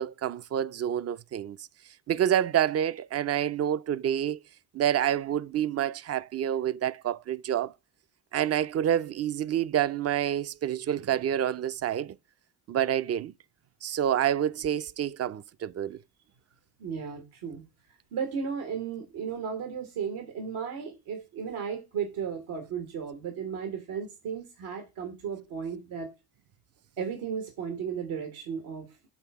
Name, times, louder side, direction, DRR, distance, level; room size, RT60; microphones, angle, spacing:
voice 1, 0.0-1.7 2.1-4.4 4.7-7.7 8.3-12.2 12.7-13.3 13.8-16.0, right 10 dB, 35° right, 0.4 m, -28 dB
voice 2, 16.8-17.6 18.1-26.1 27.0-29.1, right 7 dB, 80° right, 1.3 m, -35 dB
7.3 x 3.4 x 4.6 m
supercardioid pair, 50°, 49 cm